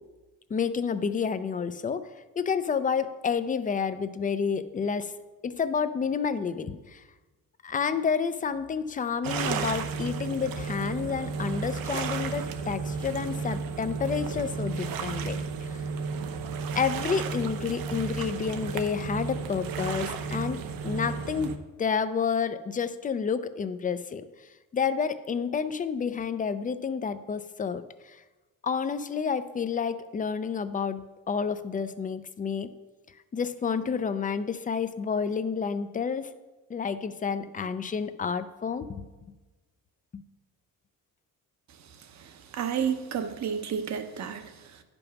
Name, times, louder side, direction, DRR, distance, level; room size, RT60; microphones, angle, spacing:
voice 1, 0.5-2.0 2.4-5.1 5.4-7.0 7.6-15.8 16.7-24.3 24.7-28.2 28.6-32.7 33.3-36.3 36.7-39.0, left 6 dB, 25° left, 12 dB, 0.5 m, -30 dB
sound 1, 9.2-21.6, right 5 dB, 85° right, 0.8 m, -33 dB
voice 2, 41.9-44.8, right 7 dB, 55° right, 8 dB, 0.9 m, -32 dB
10.5 x 5.3 x 5.8 m, 1.2 s
cardioid pair, 130°, 34 cm